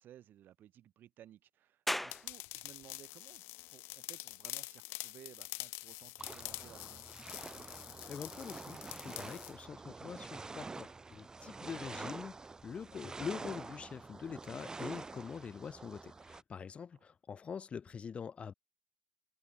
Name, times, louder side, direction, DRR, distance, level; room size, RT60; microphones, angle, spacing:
voice 1, 0.0-3.4 3.7-7.1 16.9-17.0, right 11 dB, 50° right, 4.4 m, -58 dB
sound 1, 1.9-15.0, left 1 dB, 5° left, 3.5 m, -49 dB
sound 2, 2.1-9.5, left 24 dB, 90° left, 3.7 m, -46 dB
sound 3, 6.2-16.4, right 3 dB, 15° right, 1.0 m, -47 dB
voice 2, 8.1-12.4 12.6-18.5, left 6 dB, 30° left, 0.6 m, -44 dB
cardioid pair, 135°, 4 cm